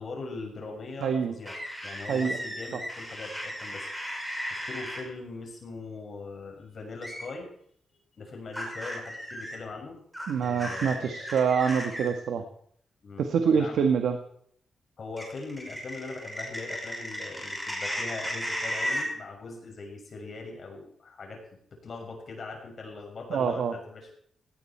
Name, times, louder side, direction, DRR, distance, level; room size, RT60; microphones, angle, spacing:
voice 1, 0.0-1.6 1.8-3.9 4.4-7.5 8.2-10.0 10.4-11.3 13.0-13.8 15.0-21.4 21.7-24.1, left 3 dB, 45° left, 1 dB, 6.7 m, -41 dB
voice 2, 1.0-1.3 2.1-2.4 10.3-12.4 13.2-14.2 23.3-23.8, right 6 dB, 80° right, 7 dB, 1.6 m, -25 dB
sound 1, 1.5-5.0 7.0-7.3 8.5-9.6 10.1-12.1 15.2-19.1, equal, ahead, 5.7 m, -35 dB
17.5 x 17.5 x 4.5 m, 0.64 s
wide cardioid pair, 140°, 0 cm